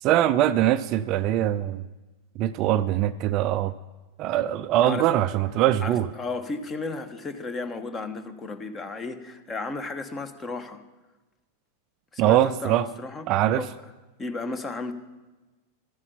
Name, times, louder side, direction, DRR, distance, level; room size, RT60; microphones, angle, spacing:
voice 1, 0.0-1.8 2.4-3.7 4.2-6.1 12.2-12.9 13.3-13.6, right 12 dB, 40° right, 13 dB, 0.4 m, -22 dB
voice 2, 5.8-10.8 12.1-13.7 14.2-14.9, left 3 dB, 20° left, 11 dB, 1.1 m, -34 dB
13.5 x 9.7 x 5.6 m, 1.2 s
figure-of-eight pair, 90°, 0 cm